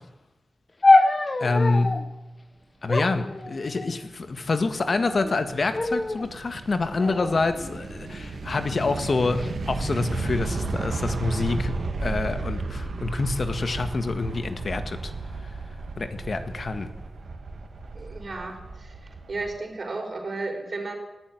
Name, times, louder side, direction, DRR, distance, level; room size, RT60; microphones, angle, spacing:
sound 1, 0.8-2.1 2.9-4.1 4.9-5.4 5.7-6.3 7.0-8.3 9.1-9.5, left 2 dB, 25° left, 1.2 m, -24 dB
voice 1, 1.4-2.1 2.8-15.1 16.0-16.9, left 3 dB, 45° left, 9 dB, 1.7 m, -27 dB
sound 2, 4.0-19.5, right 3 dB, 60° right, 2.8 m, -34 dB
voice 2, 17.9-19.0 19.3-21.0, right 3 dB, 40° right, 4 dB, 4.2 m, -33 dB
19.0 x 15.0 x 9.9 m, 1.0 s
wide cardioid pair, 145°, 0 cm